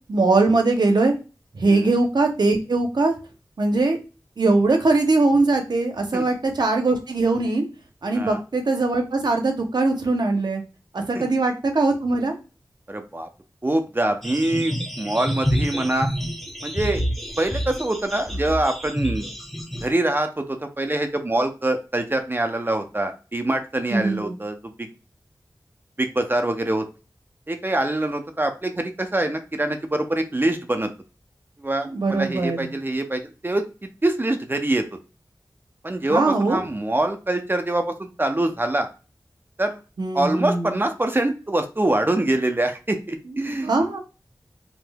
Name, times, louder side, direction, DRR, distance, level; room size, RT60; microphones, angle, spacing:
voice 1, 0.1-1.1 1.5-3.1 3.6-4.0 4.4-7.6 8.0-10.6 10.9-12.3 23.9-24.3 31.8-32.7 36.1-36.6 40.0-40.7 43.6-44.0, right 3 dB, 70° right, 4 dB, 0.7 m, -21 dB
voice 2, 12.9-13.3 13.6-16.1 16.6-17.0 17.4-19.3 19.8-24.9 26.0-26.9 27.5-30.9 31.6-33.6 34.0-34.9 35.8-38.9 39.6-39.8 40.1-43.9, right 1 dB, 30° right, 6 dB, 0.5 m, -24 dB
sound 1, 14.2-19.9, equal, 5° left, 0.8 m, -28 dB
3.2 x 2.8 x 2.2 m, 0.32 s
cardioid pair, 40°, 7 cm